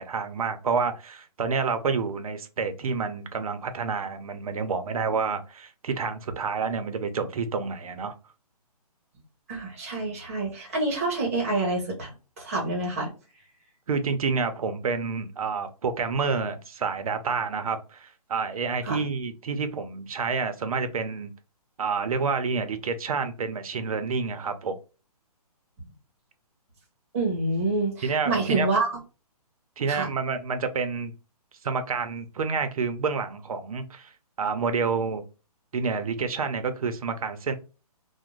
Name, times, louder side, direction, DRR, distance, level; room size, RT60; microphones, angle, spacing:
voice 1, 0.0-8.1 13.9-21.3 21.8-24.8 28.0-28.7 29.8-31.1 31.6-34.1 34.4-35.2 35.7-37.5, right 5 dB, 65° right, 0.5 m, -28 dB
voice 2, 9.5-13.1 18.8-19.0 27.1-28.9 29.9-30.1, right 2 dB, 20° right, 0.7 m, -27 dB
2.5 x 2.0 x 3.0 m
hypercardioid pair, 175°, 20 cm